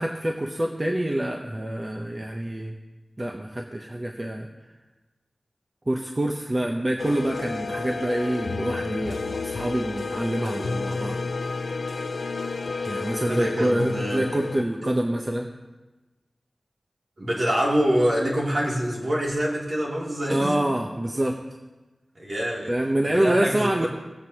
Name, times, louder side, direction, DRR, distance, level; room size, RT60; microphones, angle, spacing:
voice 1, 0.0-2.8 3.2-4.5 5.9-11.2 12.9-15.5 20.3-21.4 22.7-23.9, right 1 dB, 30° right, 2 dB, 0.8 m, -26 dB
sound 1, 7.0-14.6, left 4 dB, 80° left, 0.5 m, -31 dB
voice 2, 13.2-14.3 14.8-14.9 17.2-20.6 22.2-22.7 23.0-23.9, equal, 60° right, -4 dB, 2.5 m, -25 dB
18.0 x 7.5 x 2.8 m, 1.2 s
wide cardioid pair, 50°, 0 cm